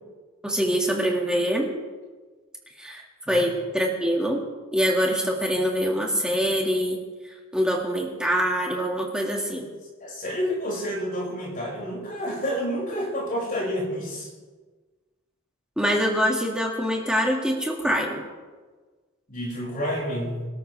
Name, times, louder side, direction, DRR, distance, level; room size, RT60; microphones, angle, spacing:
voice 1, 0.4-1.7 2.8-4.4 4.7-7.0 7.2-9.7 15.8-18.2, equal, 5° right, -1 dB, 2.0 m, -24 dB
voice 2, 10.0-14.3 19.3-20.5, equal, 40° left, -4 dB, 5.9 m, -29 dB
26.0 x 13.0 x 3.4 m, 1.4 s
head